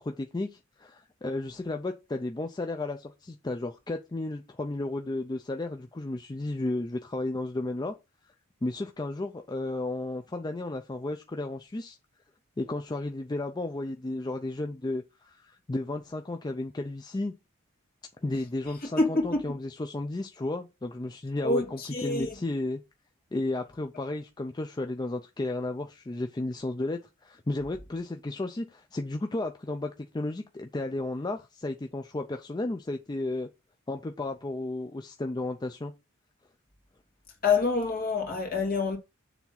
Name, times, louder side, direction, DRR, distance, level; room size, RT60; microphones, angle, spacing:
voice 1, 0.0-7.9 8.6-12.0 12.6-17.3 18.2-22.8 23.3-33.5 33.9-35.9, left 2 dB, 20° left, 0.4 m, -33 dB
voice 2, 19.0-19.4 21.4-22.3 37.4-39.0, left 3 dB, 45° left, 2.2 m, -26 dB
7.0 x 3.5 x 5.7 m
head